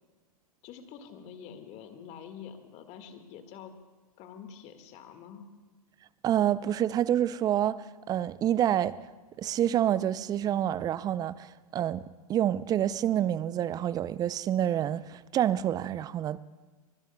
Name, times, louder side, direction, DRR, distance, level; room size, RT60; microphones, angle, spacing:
voice 1, 0.6-3.7 4.2-5.5, left 7 dB, 35° left, 1.8 m, -46 dB
voice 2, 6.2-9.0 9.4-12.0 12.3-16.4, right 11 dB, 20° right, 0.5 m, -28 dB
24.0 x 23.0 x 2.3 m
figure-of-eight pair, 105°, 19 cm